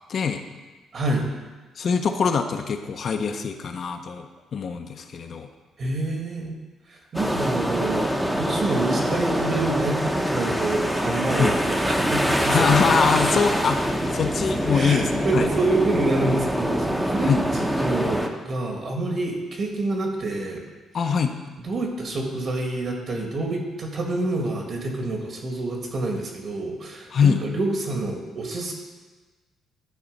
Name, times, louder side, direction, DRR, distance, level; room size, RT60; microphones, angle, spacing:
voice 1, 0.1-0.4 1.8-4.3 4.5-5.5 11.4-11.5 12.5-15.5 17.2-17.4 20.9-21.3 27.1-27.4, left 6 dB, 50° left, 6 dB, 0.6 m, -23 dB
voice 2, 0.9-1.3 5.8-6.6 6.9-12.7 13.1-13.4 14.7-20.6 21.6-28.7, right 2 dB, 50° right, 1 dB, 1.7 m, -27 dB
sound 1, 7.1-18.3, equal, 5° right, 0.7 m, -24 dB
11.5 x 4.1 x 5.3 m, 1.3 s
cardioid pair, 115°, 0 cm